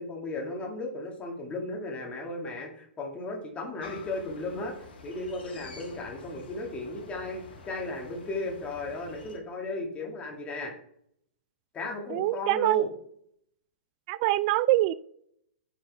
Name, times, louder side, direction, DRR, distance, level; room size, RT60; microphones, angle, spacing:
voice 1, 0.0-10.7 11.7-12.9, left 2 dB, 20° left, 1.9 m, -35 dB
sound 1, 3.8-9.4, left 4 dB, 70° left, 2.0 m, -48 dB
voice 2, 12.1-12.8 14.1-14.9, right 16 dB, 45° right, 0.4 m, -24 dB
8.7 x 5.0 x 3.4 m
hypercardioid pair, 110°, 6 cm